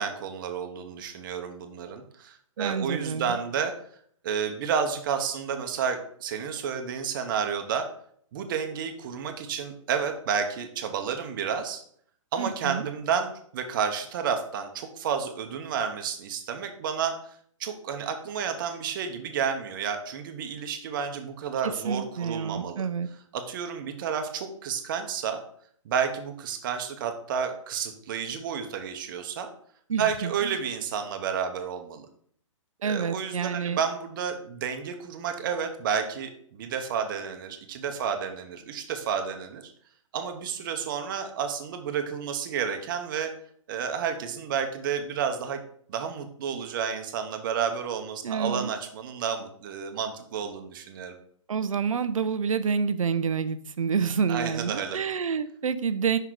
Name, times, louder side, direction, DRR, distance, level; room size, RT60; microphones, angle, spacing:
voice 1, 0.0-3.7 4.2-7.9 8.3-11.8 12.3-17.1 17.6-22.9 23.3-25.4 25.8-29.5 30.0-32.1 32.8-39.7 40.1-43.3 43.7-45.6 45.9-51.1 54.3-55.0, right 7 dB, 40° right, 6 dB, 0.8 m, -31 dB
voice 2, 2.6-3.4 12.4-12.9 21.8-23.1 29.9-30.6 32.8-33.8 48.2-48.7 51.5-56.2, right 6 dB, 90° right, 12 dB, 0.5 m, -28 dB
5.6 x 3.8 x 4.6 m, 0.62 s
hypercardioid pair, 150°, 17 cm